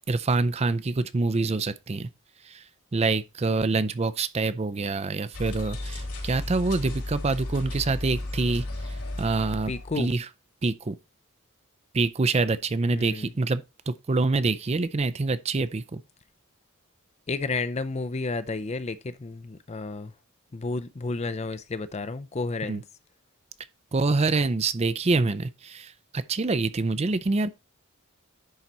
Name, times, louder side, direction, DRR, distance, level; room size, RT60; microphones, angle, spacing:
voice 1, 0.1-2.1 2.4-2.6 2.9-8.6 9.2-9.7 10.0-10.3 10.6-11.0 11.9-16.0 22.7-22.8 23.9-27.5, right 3 dB, 30° right, 0.4 m, -26 dB
sound 1, 5.3-10.0, left 1 dB, 90° left, 4.0 m, -34 dB
voice 2, 9.7-10.1 12.9-13.3 17.3-20.1 20.5-22.8, left 3 dB, 30° left, 0.5 m, -31 dB
10.5 x 4.0 x 4.2 m
head